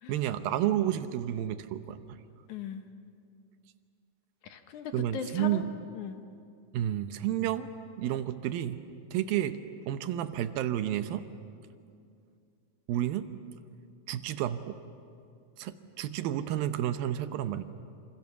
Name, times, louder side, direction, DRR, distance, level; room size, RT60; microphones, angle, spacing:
voice 1, 0.1-2.2 4.9-5.7 6.7-7.7 8.0-8.8 9.1-9.6 9.9-11.2 12.9-13.3 14.1-14.8 15.6-17.6, right 12 dB, 75° right, 10 dB, 2.4 m, -31 dB
voice 2, 2.5-2.8 4.4-5.7 5.9-6.2, left 7 dB, 65° left, 7 dB, 2.0 m, -39 dB
27.0 x 27.0 x 7.0 m, 2.4 s
omnidirectional pair, 4.7 m